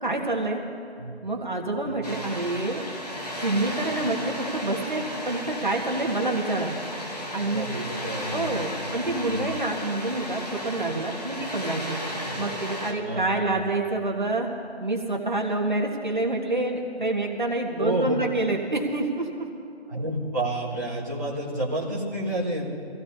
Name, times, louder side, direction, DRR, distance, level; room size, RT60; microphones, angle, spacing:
voice 1, 0.0-0.6 1.2-2.8 3.4-6.7 7.3-7.7 8.3-12.0 12.4-14.5 14.8-19.5, right 2 dB, 45° right, 1 dB, 1.7 m, -27 dB
Water, 2.0-12.9, equal, 35° left, 1.6 m, -34 dB
voice 2, 7.4-9.5 12.3-12.4 13.0-13.6 17.8-18.1 19.9-22.7, right 1 dB, 15° right, -10 dB, 1.4 m, -30 dB
25.0 x 16.0 x 2.8 m, 2.4 s
figure-of-eight pair, 170°, 33 cm